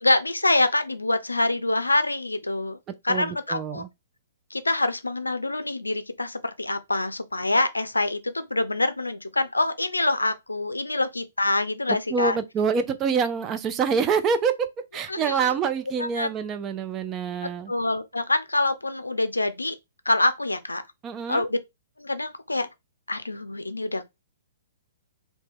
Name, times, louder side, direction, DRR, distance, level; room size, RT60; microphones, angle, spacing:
voice 1, 0.0-2.8 3.0-3.8 4.5-12.4 15.1-15.5 16.0-16.3 17.7-19.7 20.1-20.8 21.3-21.6 22.0-22.7 23.1-24.1, left 2 dB, 80° left, 0.5 m, -25 dB
voice 2, 3.1-3.9 11.9-14.7 14.9-17.7 21.0-21.4, right 6 dB, 20° right, 0.4 m, -26 dB
2.8 x 2.8 x 3.5 m
figure-of-eight pair, 115°, 0 cm